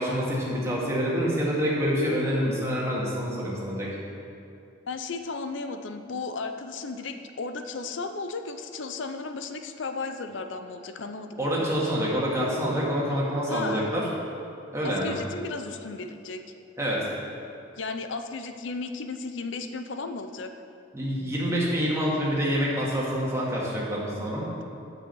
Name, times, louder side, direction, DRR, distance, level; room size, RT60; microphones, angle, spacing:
voice 1, 0.0-3.9 11.4-14.1 14.7-15.1 16.8-17.1 20.9-24.4, equal, 15° right, -5 dB, 2.1 m, -27 dB
voice 2, 4.9-11.7 13.5-13.9 14.8-16.4 17.8-20.5, left 3 dB, 70° left, 7 dB, 0.6 m, -35 dB
8.9 x 6.4 x 7.7 m, 2.8 s
head